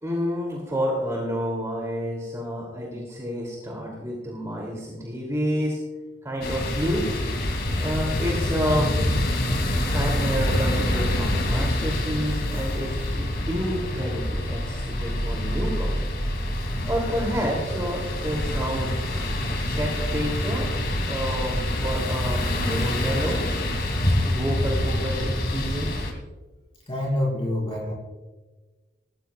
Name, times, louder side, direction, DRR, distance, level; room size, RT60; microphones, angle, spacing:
voice 1, 0.0-5.8 6.2-7.1 7.8-8.9 9.9-16.0 16.9-18.9 19.5-20.7 21.1-23.4 24.2-25.9, equal, 15° right, -3 dB, 2.7 m, -29 dB
sound 1, 6.4-26.1, left 1 dB, 55° left, 2.2 m, -26 dB
voice 2, 26.9-27.9, left 1 dB, 30° left, -3 dB, 4.3 m, -26 dB
20.5 x 14.0 x 2.3 m, 1.2 s
head